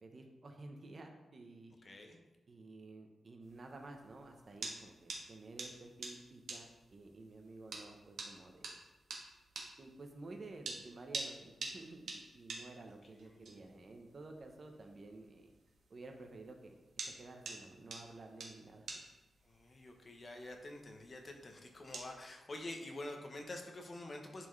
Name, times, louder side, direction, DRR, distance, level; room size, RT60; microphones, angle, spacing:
voice 1, 0.0-1.8 2.5-8.7 9.8-15.5 15.9-16.7 17.0-18.9, right 2 dB, 40° right, 3 dB, 0.9 m, -52 dB
voice 2, 1.8-2.2 13.2-13.6 19.4-24.5, left 2 dB, 35° left, 3 dB, 0.8 m, -47 dB
sound 1, 3.4-22.2, right 3 dB, 85° right, 1.3 m, -49 dB
10.5 x 4.4 x 3.2 m, 1.1 s
wide cardioid pair, 145°, 0 cm